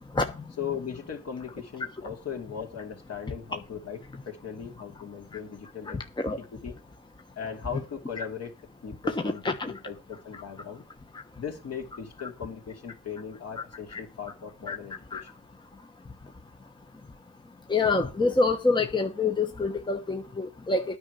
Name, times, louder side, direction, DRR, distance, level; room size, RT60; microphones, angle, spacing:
voice 1, 0.6-6.0 6.2-6.7 7.4-8.5 8.8-10.8 11.4-15.3, left 7 dB, 50° left, 2.6 m, -38 dB
voice 2, 9.1-9.7 13.9-14.0 14.7-14.8 15.1-15.2 17.7-20.8, left 3 dB, 15° left, 1.0 m, -26 dB
9.8 x 5.1 x 8.0 m
cardioid pair, 90°, 31 cm